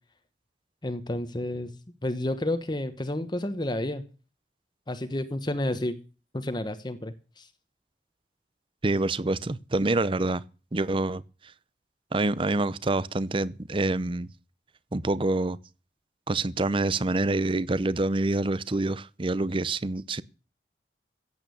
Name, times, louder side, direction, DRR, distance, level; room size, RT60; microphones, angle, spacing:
voice 1, 0.8-1.7 2.0-4.0 4.9-5.9 6.3-7.5, left 1 dB, 25° left, 1.2 m, -30 dB
voice 2, 8.8-10.4 10.7-11.2 12.1-14.3 14.9-15.6 16.3-20.2, right 2 dB, 30° right, 0.6 m, -26 dB
16.0 x 8.6 x 7.0 m
head